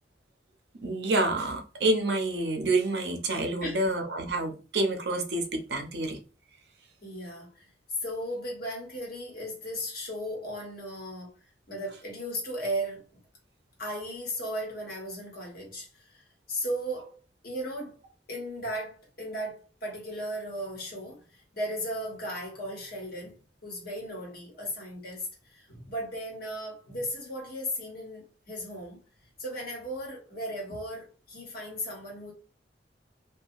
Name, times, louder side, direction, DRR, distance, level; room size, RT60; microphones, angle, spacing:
voice 1, 0.8-6.2, right 2 dB, 65° right, 0.6 m, -28 dB
voice 2, 7.0-7.7 8.0-11.3 11.7-13.2 13.8-16.2 16.5-17.2 17.4-18.0 18.3-29.0 29.4-32.3, equal, 55° left, 1.1 m, -36 dB
2.7 x 2.2 x 2.4 m
head